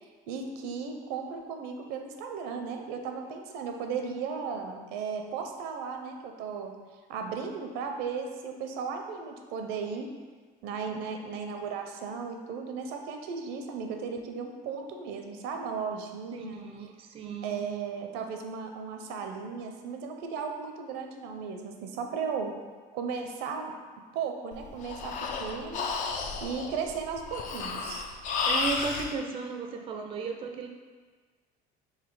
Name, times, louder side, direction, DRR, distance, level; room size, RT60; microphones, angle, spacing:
voice 1, 0.3-6.7 7.1-10.1 10.6-16.6 17.4-22.5 22.9-23.7 24.1-25.1 25.4-25.9 26.4-28.1, right 5 dB, 85° right, 4 dB, 0.6 m, -35 dB
voice 2, 16.3-17.6 28.4-30.7, right 4 dB, 35° right, 3 dB, 0.4 m, -35 dB
Breathing, 24.5-29.1, left 4 dB, 50° left, 0.5 m, -32 dB
4.0 x 2.7 x 4.6 m, 1.5 s
cardioid pair, 145°, 17 cm